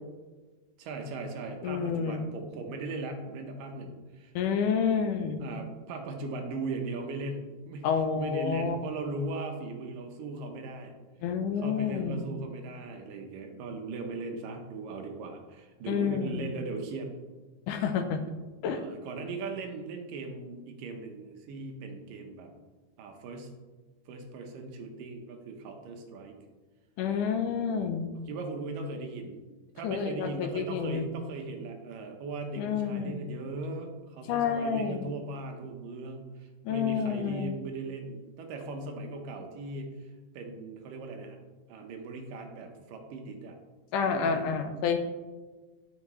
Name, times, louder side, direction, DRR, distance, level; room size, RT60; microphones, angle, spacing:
voice 1, 0.8-4.3 5.4-7.9 8.2-11.0 11.6-17.1 18.7-22.5 23.0-23.5 24.1-26.3 28.1-29.4 29.8-39.9 40.3-41.4 41.7-43.6 44.0-44.6, right 3 dB, 85° right, 4 dB, 2.7 m, -38 dB
voice 2, 1.6-2.3 4.4-5.5 7.8-8.8 11.2-12.2 15.9-16.5 17.7-18.2 18.6-18.8 27.0-28.1 29.8-31.1 32.6-33.2 34.3-35.1 36.6-37.6 43.9-45.0, left 6 dB, 80° left, 7 dB, 2.2 m, -29 dB
11.5 x 7.1 x 3.1 m, 1.3 s
omnidirectional pair, 3.8 m